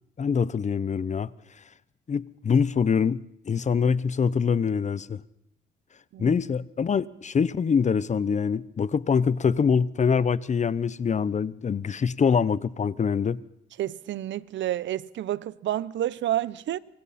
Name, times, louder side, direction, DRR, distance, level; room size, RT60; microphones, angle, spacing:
voice 1, 0.2-1.3 2.1-5.2 6.2-13.4, left 6 dB, 35° left, 0.8 m, -24 dB
voice 2, 13.8-16.8, right 12 dB, 70° right, 0.8 m, -29 dB
26.0 x 24.0 x 4.3 m
cardioid pair, 90°, 20 cm